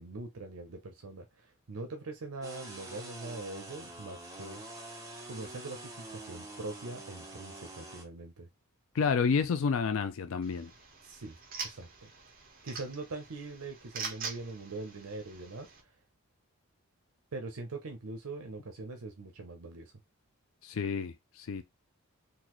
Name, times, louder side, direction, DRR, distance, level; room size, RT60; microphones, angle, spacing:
voice 1, 0.0-4.6 5.3-8.5 11.0-11.3 11.6-12.1 12.6-15.7 17.3-19.9, right 3 dB, 80° right, 0.7 m, -42 dB
sound 1, 2.4-8.0, right 2 dB, 15° right, 0.9 m, -46 dB
voice 2, 8.9-10.7 20.6-21.6, left 5 dB, 65° left, 0.4 m, -30 dB
sound 2, 10.4-15.8, right 5 dB, 40° right, 0.9 m, -44 dB
3.9 x 2.4 x 3.0 m
head